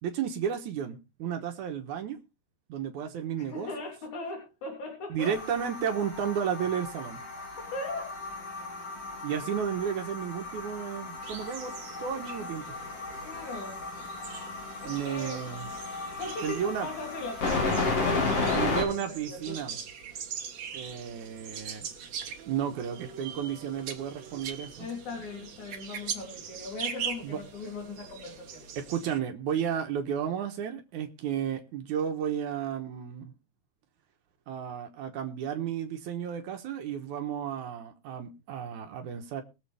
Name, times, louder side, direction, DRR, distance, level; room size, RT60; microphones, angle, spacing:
voice 1, 0.0-2.2 2.7-3.7 5.1-7.2 9.2-12.6 14.8-15.7 16.4-16.9 18.5-19.8 20.7-21.9 22.5-24.9 27.2-27.4 28.8-33.3 34.5-39.4, right 8 dB, 90° right, 2.6 m, -33 dB
voice 2, 3.4-5.4 7.6-8.2 13.2-13.8 14.8-15.5 16.2-19.0 19.3-19.8 24.8-28.6, left 3 dB, 80° left, 4.5 m, -39 dB
sound 1, 5.2-18.8, left 3 dB, 55° left, 4.1 m, -34 dB
sound 2, 11.2-29.2, right 7 dB, 65° right, 2.7 m, -42 dB
22.5 x 7.5 x 3.4 m
omnidirectional pair, 3.4 m